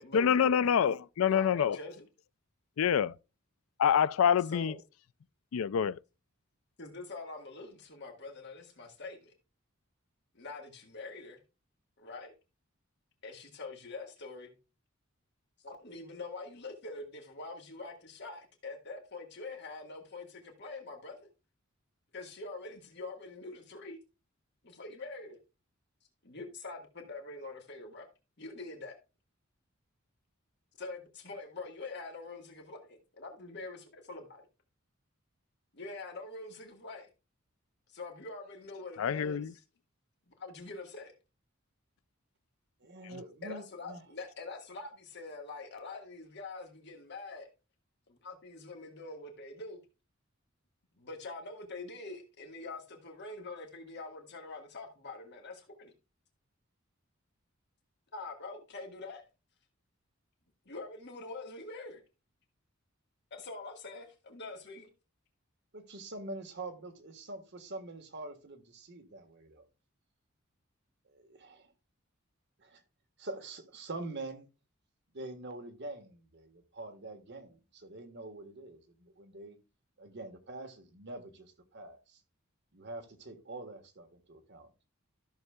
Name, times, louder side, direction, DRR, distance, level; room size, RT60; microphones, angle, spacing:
voice 1, 0.1-1.8 2.8-3.1 3.8-4.7 5.5-6.0 39.0-39.5, left 8 dB, 85° left, 0.4 m, -26 dB
voice 2, 1.2-2.1 4.5-4.8 6.8-9.3 10.3-11.4 12.0-12.3 13.2-14.5 15.6-21.3 22.1-24.0 24.6-25.4 26.2-28.1 28.4-28.9 30.8-34.4 35.7-37.1 37.9-39.6 40.4-41.1 43.4-47.5 48.1-49.8 50.9-55.9 58.1-59.2 60.6-62.0 63.3-64.9, left 3 dB, 55° left, 1.6 m, -44 dB
voice 3, 42.8-44.0 65.7-69.6 71.0-71.7 72.6-72.8 73.2-74.5 75.1-79.6 80.0-82.2 82.7-84.7, right 2 dB, 60° right, 1.4 m, -45 dB
13.5 x 6.6 x 2.3 m
head